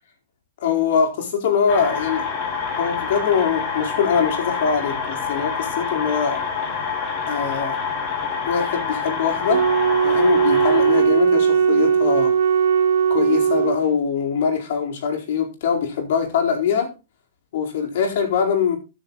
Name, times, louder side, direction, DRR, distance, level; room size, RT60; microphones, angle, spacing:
voice 1, 0.6-2.3 2.7-6.4 7.3-7.8 8.5-9.7 10.0-12.3 13.1-16.9 17.5-18.8, left 6 dB, 65° left, 4.4 m, -22 dB
sound 1, 1.7-11.0, left 6 dB, 35° left, 6.2 m, -27 dB
Wind instrument woodwind instrument, 9.5-13.8, right 7 dB, 70° right, 2.5 m, -18 dB
14.0 x 7.3 x 4.1 m
hypercardioid pair, 135°, 0 cm